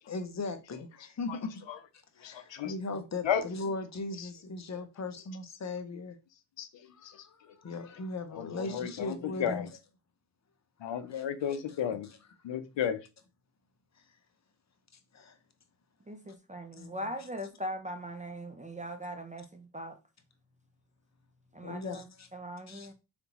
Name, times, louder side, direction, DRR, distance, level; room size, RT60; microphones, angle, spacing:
voice 1, 0.1-1.5 2.2-6.2 6.9-9.7 10.8-11.2 15.1-15.3 16.8-16.9 21.6-22.3 22.7-22.9, left 3 dB, 35° left, 0.8 m, -38 dB
voice 2, 2.2-2.7 3.2-3.4 4.2-4.3 6.6-7.3 8.3-9.7 10.8-12.1 12.4-13.0, left 8 dB, 65° left, 0.7 m, -33 dB
voice 3, 16.1-20.0 21.5-22.9, equal, 15° right, 0.5 m, -40 dB
3.9 x 3.5 x 2.9 m
cardioid pair, 80°, 49 cm